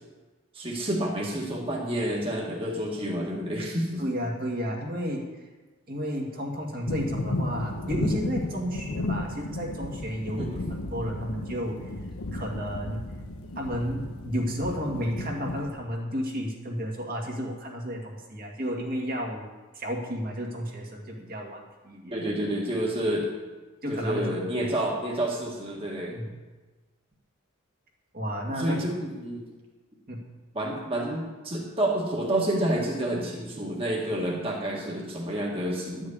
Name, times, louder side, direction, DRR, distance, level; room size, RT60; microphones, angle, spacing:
voice 1, 0.5-4.0 10.4-10.6 22.1-23.3 23.9-26.1 28.5-29.5 30.5-36.1, right 1 dB, 25° right, -3 dB, 1.8 m, -29 dB
voice 2, 4.0-5.2 5.9-11.9 12.3-13.1 13.6-19.5 19.7-22.1 23.8-24.3 24.6-24.7 26.1-26.3 28.1-28.8 30.1-30.3, equal, 45° right, -1 dB, 1.9 m, -32 dB
sound 1, 6.9-15.7, left 2 dB, 90° left, 1.1 m, -33 dB
11.5 x 6.4 x 8.6 m, 1.2 s
head